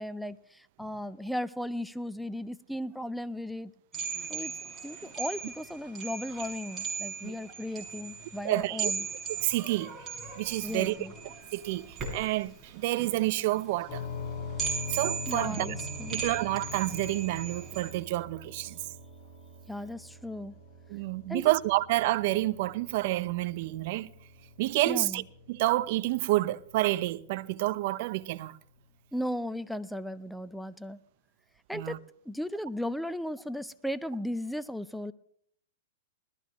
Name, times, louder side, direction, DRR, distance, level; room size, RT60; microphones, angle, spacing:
voice 1, 0.0-3.7 4.3-4.5 4.8-9.1 10.6-11.1 15.3-16.2 19.7-20.6 21.3-21.5 24.9-25.2 29.1-31.0 31.7-32.0 32.3-35.1, left 1 dB, ahead, 0.5 m, -36 dB
sound 1, 3.9-17.9, right 6 dB, 20° right, 5.8 m, -38 dB
voice 2, 8.4-8.9 9.4-9.9 10.4-11.0 11.5-14.1 14.9-15.7 16.1-18.8 20.9-24.1 24.6-25.2 25.5-28.6 31.7-32.0, right 18 dB, 55° right, 0.7 m, -29 dB
sound 2, 13.9-27.6, left 3 dB, 50° left, 5.3 m, -44 dB
20.0 x 14.0 x 3.1 m
hypercardioid pair, 120°, 0 cm